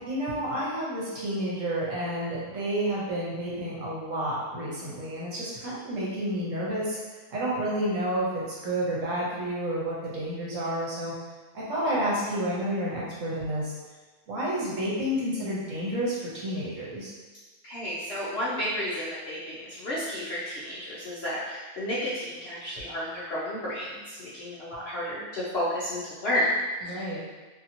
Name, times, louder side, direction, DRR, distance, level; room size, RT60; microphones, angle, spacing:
voice 1, 0.0-7.0 7.3-11.1 11.5-13.7 14.3-17.1 26.8-27.2, right 1 dB, 65° right, -6 dB, 1.1 m, -30 dB
voice 2, 17.6-26.5 26.8-26.9, left 1 dB, 60° left, -9 dB, 0.7 m, -32 dB
2.8 x 2.7 x 2.6 m, 1.3 s
omnidirectional pair, 1.6 m